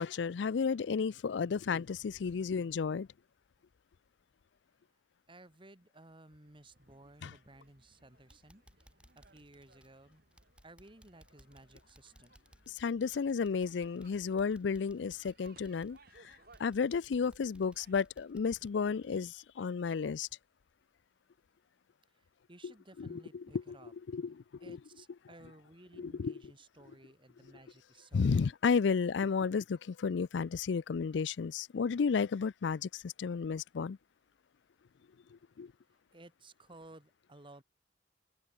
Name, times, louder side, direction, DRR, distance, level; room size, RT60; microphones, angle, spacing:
voice 1, 0.0-3.1 7.2-7.3 12.7-16.3 16.6-20.3 22.6-22.7 23.0-23.8 24.1-24.4 24.7-24.8 26.0-26.3 28.1-34.0 35.6-35.7, left 5 dB, 75° left, 0.4 m, -32 dB
voice 2, 5.3-8.9 9.2-10.2 10.6-12.3 22.5-23.9 24.6-28.5 36.1-37.6, right 2 dB, 30° right, 2.5 m, -57 dB
sound 1, 6.4-19.2, right 3 dB, 60° right, 5.8 m, -66 dB
sound 2, 7.6-8.0 8.3-19.9 20.2-20.3 20.8-20.9, equal, 5° right, 5.9 m, -63 dB
open air
head